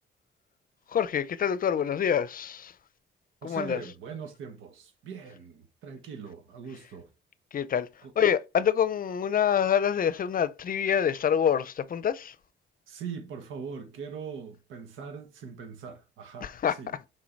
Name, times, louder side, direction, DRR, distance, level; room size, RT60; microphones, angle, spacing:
voice 1, 0.9-2.7 3.4-3.8 7.5-7.9 8.2-12.3 16.4-16.8, left 8 dB, 45° left, 0.6 m, -26 dB
voice 2, 3.4-7.1 8.0-8.1 12.9-17.1, right 6 dB, 85° right, 1.4 m, -41 dB
6.3 x 3.8 x 4.5 m
cardioid pair, 90°, 20 cm